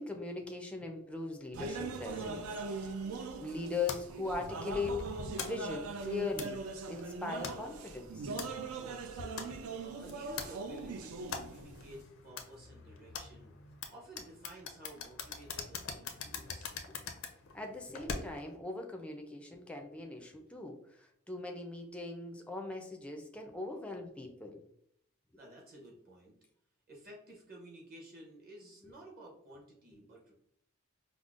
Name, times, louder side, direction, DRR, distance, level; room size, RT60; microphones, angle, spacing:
voice 1, 0.0-2.9 3.4-8.3 16.4-16.5 17.5-24.6, left 3 dB, 5° left, 2 dB, 0.4 m, -40 dB
sound 1, 1.5-12.0, right 4 dB, 85° right, 0.4 m, -41 dB
sound 2, 3.9-18.6, left 5 dB, 75° left, 0.5 m, -45 dB
voice 2, 8.8-13.5 13.9-16.8 25.3-26.4 26.9-30.3, right 1 dB, 45° right, -2 dB, 0.9 m, -53 dB
5.1 x 2.0 x 2.4 m, 0.70 s
head